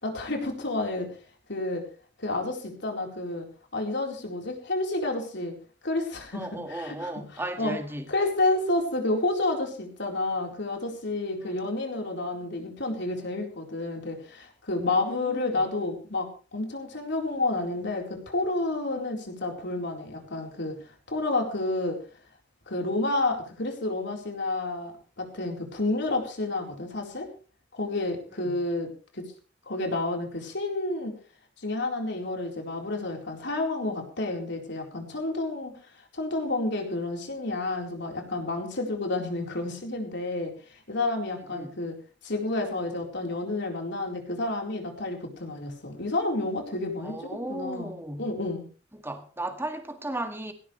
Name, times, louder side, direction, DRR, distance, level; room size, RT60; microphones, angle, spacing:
voice 1, 0.0-1.1 1.5-1.8 2.2-3.5 3.7-5.5 5.8-7.8 8.1-22.0 22.7-24.9 25.2-27.3 27.7-29.3 29.7-31.1 31.6-35.7 36.1-42.0 42.2-47.2 47.5-48.6, left 2 dB, 65° left, 4.2 m, -30 dB
voice 2, 6.3-8.1 11.4-11.6 15.2-15.6 28.4-28.6 41.3-41.7 47.0-48.3 48.9-50.5, right 1 dB, 10° right, 1.9 m, -36 dB
18.0 x 17.0 x 3.3 m
head